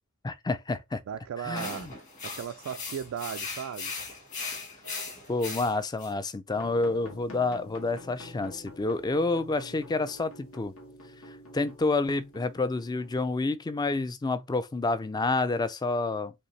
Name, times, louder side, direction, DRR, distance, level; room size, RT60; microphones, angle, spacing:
voice 1, 0.2-1.0 1.4-1.9 5.3-10.7 11.5-16.3, left 3 dB, 20° left, 0.4 m, -29 dB
voice 2, 1.1-1.9 2.2-3.9, right 8 dB, 75° right, 0.3 m, -36 dB
sound 1, 1.5-6.1, left 4 dB, 35° left, 1.8 m, -38 dB
sound 2, 6.5-13.2, left 1 dB, 75° left, 1.5 m, -48 dB
5.1 x 2.8 x 3.2 m
head